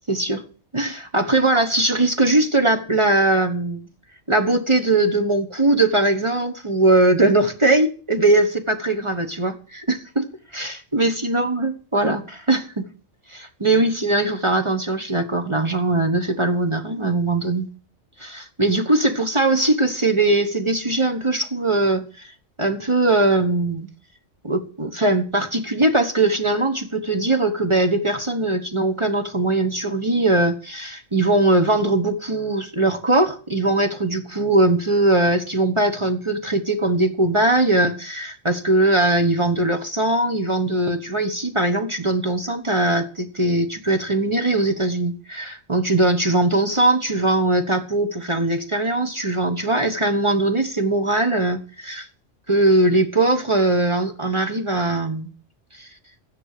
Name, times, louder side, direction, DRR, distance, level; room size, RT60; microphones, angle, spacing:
voice 1, 0.1-0.4 0.7-3.9 4.3-10.3 10.5-12.9 13.3-17.7 18.2-22.3 22.6-23.9 24.4-52.1 52.5-55.3 55.7-55.9, right 2 dB, 25° right, 5 dB, 1.2 m, -20 dB
13.5 x 9.8 x 6.7 m, 0.41 s
omnidirectional pair, 1.3 m